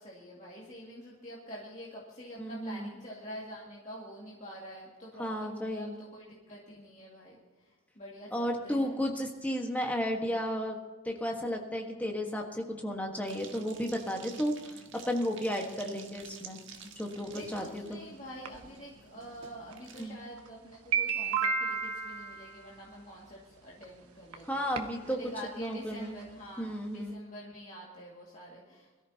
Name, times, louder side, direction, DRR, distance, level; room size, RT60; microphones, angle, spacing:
voice 1, 0.0-9.0 17.0-29.0, equal, 30° left, -5 dB, 2.3 m, -47 dB
voice 2, 2.4-2.9 5.2-5.9 8.3-10.8 11.0-16.6 17.0-18.0 20.0-20.2 24.5-25.2 25.6-26.2 26.6-27.2, equal, 5° left, 1 dB, 1.4 m, -33 dB
sound 1, 13.3-20.1, right 6 dB, 55° right, 1.5 m, -51 dB
sound 2, 17.3-17.4 18.5-18.6 19.7-19.8 20.4-20.5 20.7-22.7 23.8-23.9 24.3-24.4 24.8-25.1 25.5-25.6 25.7-25.8 26.2-26.3, right 6 dB, 85° right, 1.2 m, -31 dB
22.0 x 13.5 x 2.9 m, 1.3 s
head